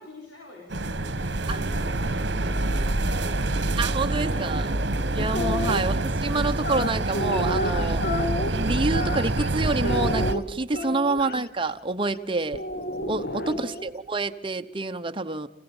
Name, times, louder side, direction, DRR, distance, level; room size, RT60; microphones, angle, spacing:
voice 1, 0.0-3.4 5.3-5.6 10.7-11.0 13.2-13.6, left 1 dB, 80° left, -2 dB, 5.6 m, -45 dB
sound 1, 0.7-10.3, right 2 dB, 65° right, 1.3 m, -26 dB
voice 2, 3.8-4.7 5.1-8.0 8.5-12.6 13.1-15.5, right 3 dB, 25° right, 8 dB, 1.0 m, -28 dB
sound 2, 5.2-5.8 6.6-9.5 9.8-11.3 12.5-13.9, left 1 dB, 55° left, 1.4 m, -30 dB
29.0 x 17.0 x 7.2 m, 0.96 s
head